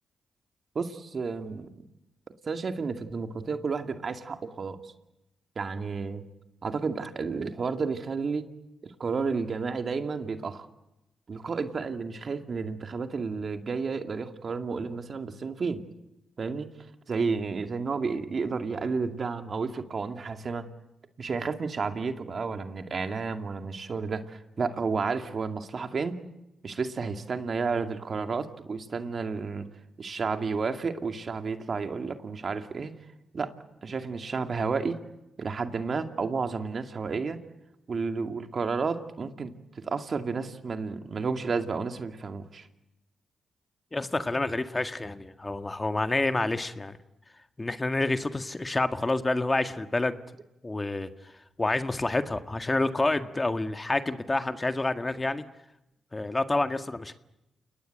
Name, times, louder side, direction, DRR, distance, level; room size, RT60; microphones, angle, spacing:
voice 1, 0.7-1.8 2.5-4.9 5.6-6.2 6.6-8.5 8.8-10.7 11.3-15.9 16.4-16.7 17.1-20.7 21.2-26.2 26.6-29.7 30.0-32.9 33.3-33.5 33.8-35.0 35.4-37.4 37.9-39.5 39.8-42.7, right 4 dB, 50° right, 7 dB, 2.3 m, -31 dB
voice 2, 43.9-47.0 47.6-50.2 50.6-51.1 51.6-55.4 56.1-57.1, left 2 dB, 25° left, 8 dB, 1.8 m, -28 dB
29.0 x 19.5 x 7.8 m, 0.90 s
supercardioid pair, 50°, 0 cm